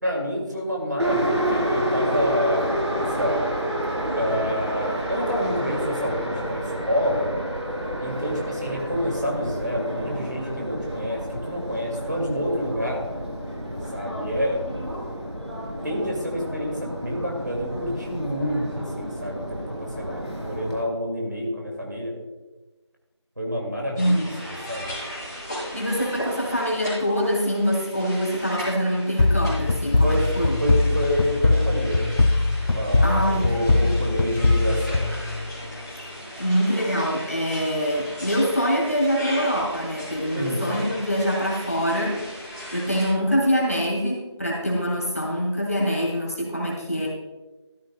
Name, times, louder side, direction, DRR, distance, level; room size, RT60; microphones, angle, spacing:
voice 1, 0.0-2.7 2.9-3.4 4.2-7.3 8.0-13.0 13.9-14.6 15.8-22.2 23.4-24.1 24.4-24.9 30.0-30.3 30.6-32.2 32.7-33.2 33.4-35.0 40.3-40.7, equal, 40° right, -1 dB, 2.3 m, -28 dB
Subway metro underground, 1.0-20.8, right 1 dB, 70° right, 3.6 m, -29 dB
sound 1, 23.9-43.1, equal, 10° right, 2.9 m, -37 dB
voice 2, 24.0-24.3 25.7-30.6 33.0-33.9 35.9-36.0 36.4-47.1, equal, 30° left, -3 dB, 2.5 m, -24 dB
sound 2, 29.2-35.8, left 2 dB, 65° left, 0.4 m, -21 dB
13.5 x 13.0 x 2.3 m, 1.1 s
figure-of-eight pair, 180°, 15 cm